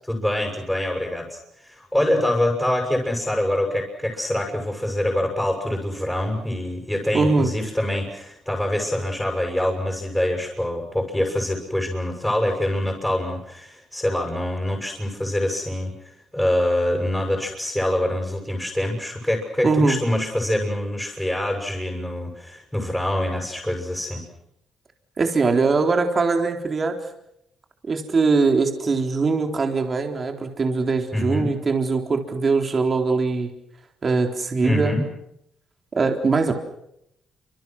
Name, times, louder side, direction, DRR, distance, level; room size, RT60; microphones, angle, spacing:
voice 1, 0.1-24.2 31.1-31.5 34.6-35.1, left 1 dB, 5° left, 0 dB, 7.4 m, -25 dB
voice 2, 7.1-7.5 19.6-20.0 25.2-26.9 27.9-33.5 34.0-34.9 36.0-36.5, right 4 dB, 40° right, 4 dB, 3.9 m, -21 dB
28.5 x 26.5 x 6.3 m, 0.79 s
cardioid pair, 90°, 0 cm